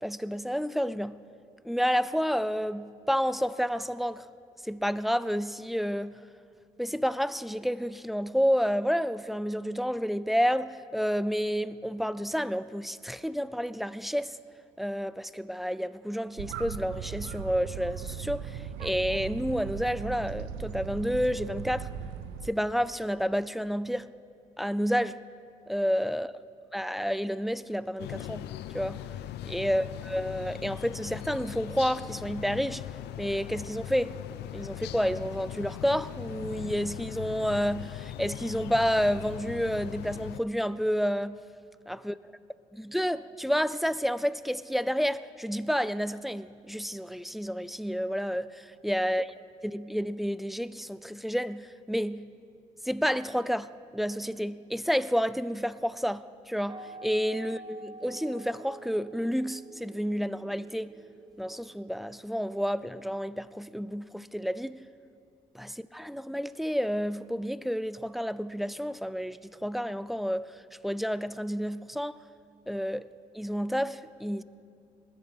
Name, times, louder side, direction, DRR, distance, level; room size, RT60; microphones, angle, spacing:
voice 1, 0.0-1.2 1.6-4.2 4.6-6.2 6.8-14.4 14.8-21.9 22.4-24.1 24.6-25.2 25.7-26.3 26.7-28.5 28.7-29.0 29.4-32.8 33.2-34.1 34.5-41.4 41.9-42.1 42.7-49.3 49.6-52.3 52.8-60.9 61.4-64.8 65.5-72.2 72.7-73.1 73.3-74.4, equal, ahead, 0.4 m, -30 dB
sound 1, 16.4-22.5, right 8 dB, 85° right, 0.6 m, -38 dB
sound 2, 28.0-40.4, left 12 dB, 75° left, 0.4 m, -40 dB
sound 3, 56.7-62.1, right 2 dB, 25° right, 0.8 m, -47 dB
20.5 x 8.4 x 4.4 m
hypercardioid pair, 45°, 17 cm